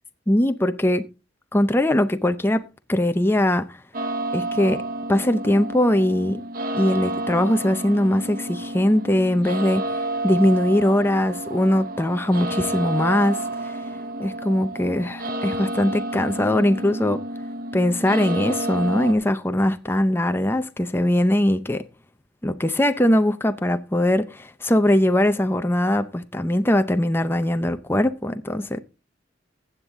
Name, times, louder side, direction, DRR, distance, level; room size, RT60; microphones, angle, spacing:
voice 1, 0.3-1.1 1.5-2.6 2.9-3.8 4.3-4.8 5.1-6.4 6.7-9.8 10.2-13.8 14.2-17.2 17.7-21.8 22.4-28.8, left 1 dB, 10° left, 0.6 m, -21 dB
sound 1, 3.9-19.1, right 1 dB, 50° right, 1.0 m, -30 dB
15.0 x 8.2 x 3.6 m
head